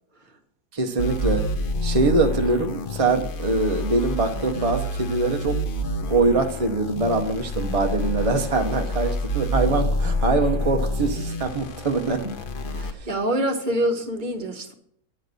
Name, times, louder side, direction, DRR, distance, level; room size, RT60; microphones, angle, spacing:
voice 1, 0.7-1.5 1.8-5.6 6.0-12.3, right 3 dB, 50° right, 0.4 m, -23 dB
sound 1, 1.0-12.9, left 1 dB, 50° left, 0.6 m, -28 dB
voice 2, 12.7-14.7, right 1 dB, 35° right, 0.9 m, -26 dB
8.9 x 6.5 x 6.6 m
omnidirectional pair, 1.9 m